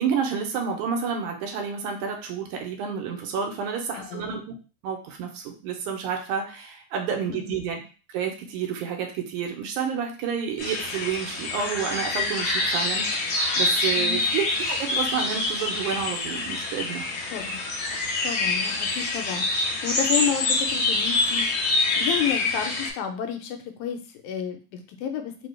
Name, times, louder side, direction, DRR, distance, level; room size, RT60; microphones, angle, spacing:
voice 1, 0.0-4.6 4.8-7.8 8.1-17.1, right 7 dB, 90° right, 3 dB, 2.2 m, -30 dB
voice 2, 3.9-4.3 7.3-7.6 14.0-14.3 17.3-17.6 18.2-21.5 22.0-25.5, left 8 dB, 85° left, 5 dB, 2.0 m, -31 dB
sound 1, 10.6-22.9, left 2 dB, 60° left, 1.9 m, -26 dB
4.9 x 2.3 x 3.2 m, 0.36 s
omnidirectional pair, 3.5 m